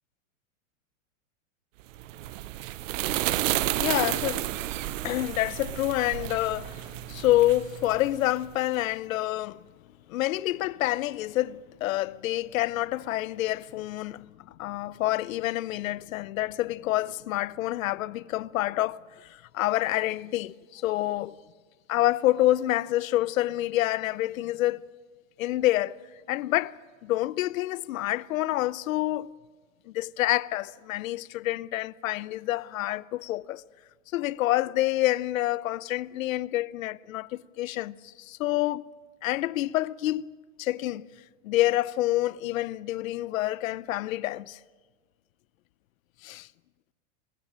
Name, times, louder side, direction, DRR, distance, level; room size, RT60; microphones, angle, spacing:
sound 1, 1.9-8.6, right 15 dB, 70° right, 0.8 m, -31 dB
voice 1, 3.7-4.6 5.0-9.6 10.1-21.4 21.9-24.9 25.4-26.0 26.3-26.7 27.0-29.3 29.9-33.6 34.1-38.8 39.2-40.2 40.6-41.1 41.4-44.6 46.2-46.5, left 15 dB, 80° left, 0.7 m, -27 dB
21.5 x 14.5 x 8.8 m
supercardioid pair, 150°, 40 cm